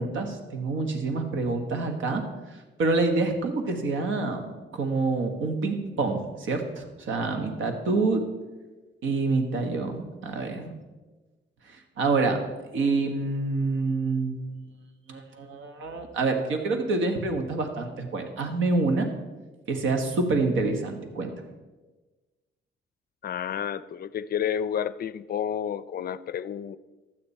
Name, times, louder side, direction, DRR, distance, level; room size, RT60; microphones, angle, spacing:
voice 1, 0.0-2.2 2.8-8.2 9.0-10.7 11.7-12.4 12.7-14.4 15.1-19.1 19.7-21.3, right 3 dB, 80° right, 6 dB, 1.5 m, -27 dB
voice 2, 23.2-26.8, left 9 dB, 50° left, 16 dB, 0.4 m, -30 dB
12.0 x 8.9 x 4.3 m, 1.2 s
cardioid pair, 90°, 20 cm